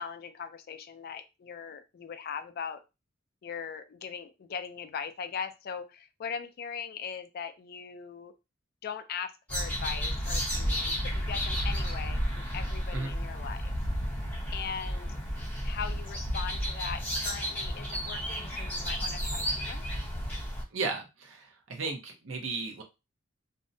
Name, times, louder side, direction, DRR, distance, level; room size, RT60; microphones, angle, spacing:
voice 1, 0.0-2.8 3.4-8.3 8.8-13.7 14.5-15.2 15.6-19.8, left 6 dB, 50° left, 9 dB, 0.3 m, -40 dB
sound 1, 9.5-20.6, equal, 10° left, 0.8 m, -32 dB
voice 2, 20.7-22.8, right 4 dB, 70° right, 3 dB, 0.6 m, -35 dB
2.6 x 2.1 x 2.6 m, 0.26 s
head